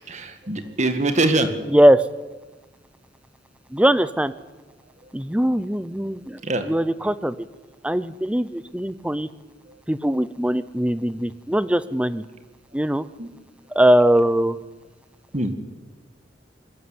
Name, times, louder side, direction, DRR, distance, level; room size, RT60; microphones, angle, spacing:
voice 1, 0.0-1.5 6.4-6.7 9.7-9.8 13.2-13.3 15.3-15.5, right 2 dB, 40° right, 8 dB, 2.0 m, -23 dB
voice 2, 1.7-2.0 3.7-4.3 5.1-7.4 7.8-9.3 9.9-12.2 12.7-13.1 13.7-14.6, right 1 dB, 5° right, 16 dB, 0.6 m, -20 dB
21.0 x 13.0 x 9.7 m, 1.2 s
head